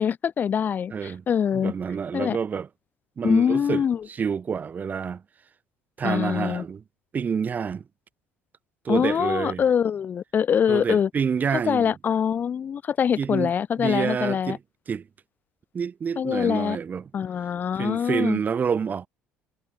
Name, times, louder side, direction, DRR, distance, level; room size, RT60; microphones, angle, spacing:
voice 1, 0.0-1.7 2.1-2.4 3.2-4.0 6.0-6.6 8.9-11.1 11.5-14.6 16.2-16.8 17.1-18.4, left 8 dB, 40° left, 0.3 m, -24 dB
voice 2, 0.9-1.2 1.5-2.7 3.2-5.2 6.0-6.8 7.1-7.8 8.8-9.6 10.7-11.9 13.2-13.5 13.8-14.6 14.9-15.1 15.7-17.1 17.8-19.1, right 6 dB, 40° right, 0.8 m, -28 dB
supercardioid pair, 80°, 5 cm